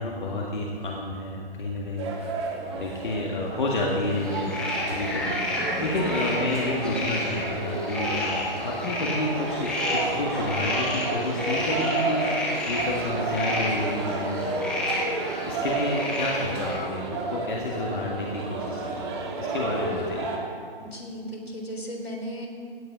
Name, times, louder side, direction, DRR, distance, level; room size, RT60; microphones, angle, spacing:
voice 1, 0.0-2.5 2.7-4.6 4.9-14.7 15.5-19.0 19.4-20.3, left 2 dB, 55° left, -3 dB, 1.9 m, -30 dB
sound 1, 2.0-20.4, right 2 dB, 25° right, 1.8 m, -31 dB
sound 2, 4.1-16.8, left 1 dB, 5° left, 0.7 m, -32 dB
voice 2, 20.8-22.5, equal, 80° left, 0 dB, 3.6 m, -36 dB
17.0 x 9.4 x 5.1 m, 2.3 s
figure-of-eight pair, 140°, 30 cm